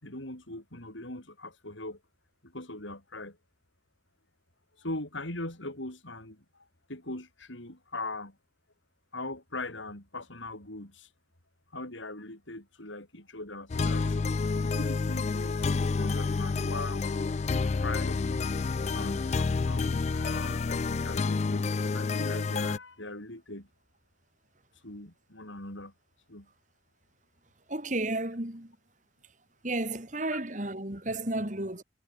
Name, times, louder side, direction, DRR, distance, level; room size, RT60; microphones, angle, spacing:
voice 1, 0.0-2.0 2.4-3.4 4.8-8.4 9.1-11.1 11.7-14.2 14.6-17.1 17.6-18.2 18.9-23.7 24.8-25.9 26.3-26.5, left 2 dB, 80° left, 6.9 m, -40 dB
sound 1, 13.7-22.8, left 4 dB, 35° left, 0.3 m, -29 dB
voice 2, 27.7-28.8 29.6-31.8, right 2 dB, 40° right, 2.8 m, -33 dB
head